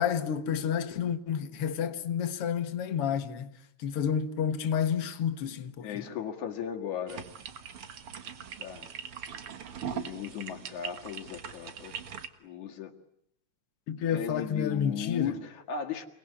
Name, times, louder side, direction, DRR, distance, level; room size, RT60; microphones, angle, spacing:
voice 1, 0.0-3.5 3.8-5.9 13.9-15.4, left 8 dB, 55° left, 2.2 m, -30 dB
voice 2, 5.8-7.2 8.6-8.9 9.8-11.9 12.4-12.9 14.1-16.1, left 8 dB, 85° left, 3.3 m, -36 dB
sound 1, 7.1-12.3, right 8 dB, 55° right, 2.2 m, -41 dB
29.0 x 20.0 x 9.8 m
omnidirectional pair, 3.3 m